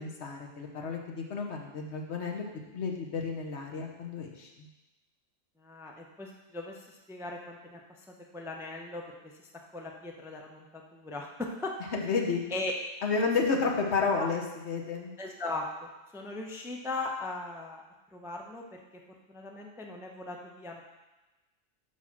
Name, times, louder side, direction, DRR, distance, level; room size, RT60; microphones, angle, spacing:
voice 1, 0.0-2.4 2.7-4.7 11.9-12.4 13.0-14.4 14.7-15.1, left 4 dB, 65° left, 1 dB, 1.2 m, -31 dB
voice 2, 5.6-8.1 8.3-11.7 12.5-12.7 14.2-14.3 15.2-17.8 18.1-18.8 19.3-20.8, left 2 dB, 5° right, 0 dB, 0.5 m, -39 dB
5.7 x 4.7 x 6.0 m, 1.1 s
omnidirectional pair, 1.2 m